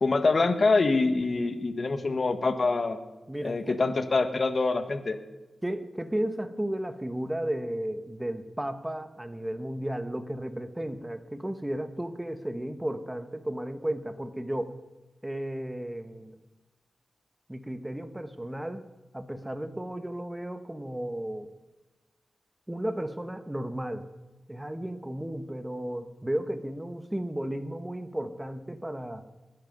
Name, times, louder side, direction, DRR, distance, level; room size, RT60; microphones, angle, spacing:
voice 1, 0.0-3.0 3.4-5.2, left 3 dB, 50° left, 9 dB, 1.6 m, -25 dB
voice 2, 3.3-3.8 5.6-14.8 15.2-16.4 17.5-18.8 19.1-21.5 22.7-24.1 24.5-29.2, right 1 dB, 15° right, 9 dB, 1.3 m, -34 dB
20.5 x 11.0 x 5.4 m, 1.1 s
cardioid pair, 65°, 0 cm